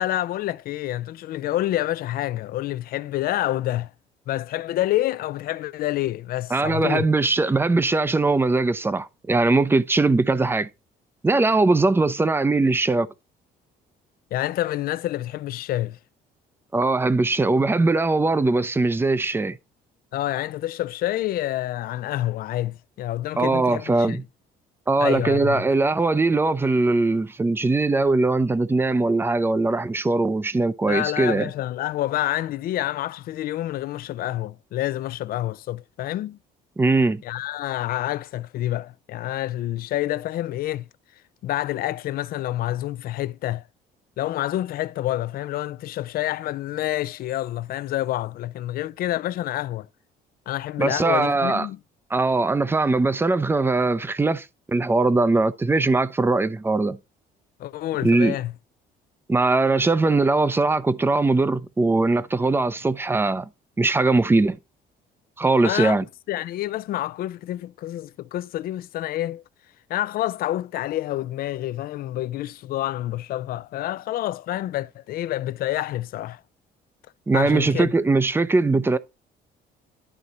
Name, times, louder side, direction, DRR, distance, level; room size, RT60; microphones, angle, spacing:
voice 1, 0.0-3.9 4.3-7.1 14.3-16.0 20.1-24.2 25.0-25.7 30.9-36.4 37.2-40.9 41.4-43.7 44.2-49.9 50.5-51.8 57.6-58.5 65.6-66.0 66.3-69.4 69.9-76.4 77.3-77.9, left 14 dB, 60° left, 0.5 m, -28 dB
voice 2, 6.5-10.7 11.2-13.1 16.7-19.6 23.4-24.2 24.9-31.5 36.8-37.2 50.8-51.7 52.1-57.0 58.0-58.4 59.3-63.5 63.8-64.6 65.4-66.0 77.3-79.0, right 3 dB, 15° right, 0.6 m, -21 dB
11.0 x 3.8 x 4.2 m
cardioid pair, 110°, 17 cm